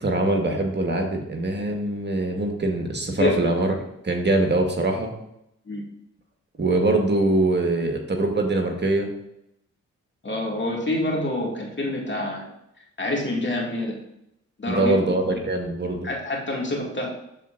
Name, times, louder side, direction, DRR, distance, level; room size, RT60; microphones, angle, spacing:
voice 1, 0.0-3.7 4.0-5.1 6.6-9.1 14.7-16.1, right 2 dB, 35° right, 2 dB, 1.5 m, -23 dB
voice 2, 10.2-12.4 13.0-14.0 14.6-15.0 16.0-17.1, left 1 dB, 35° left, -2 dB, 2.2 m, -27 dB
12.5 x 4.3 x 2.6 m, 0.81 s
supercardioid pair, 45°, 31 cm